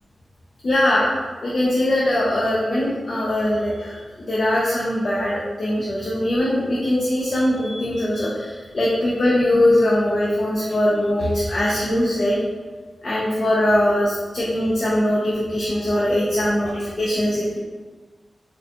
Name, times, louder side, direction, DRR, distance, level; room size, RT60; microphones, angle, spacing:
voice 1, 0.6-1.1 1.4-3.9 4.2-12.4 13.0-17.6, left 1 dB, 55° left, -6 dB, 0.6 m, -21 dB
3.9 x 2.2 x 2.8 m, 1.4 s
cardioid pair, 65°, 0 cm